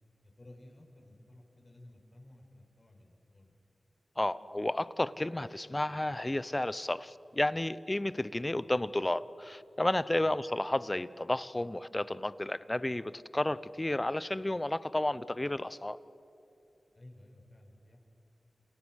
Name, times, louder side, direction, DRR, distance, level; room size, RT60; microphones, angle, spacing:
voice 1, 0.2-3.6 10.2-10.3 16.9-18.1, left 1 dB, 40° left, 2 dB, 6.0 m, -55 dB
voice 2, 4.2-16.0, left 1 dB, 20° left, 16 dB, 0.9 m, -32 dB
29.5 x 28.5 x 6.5 m, 2.9 s
wide cardioid pair, 65°, 0 cm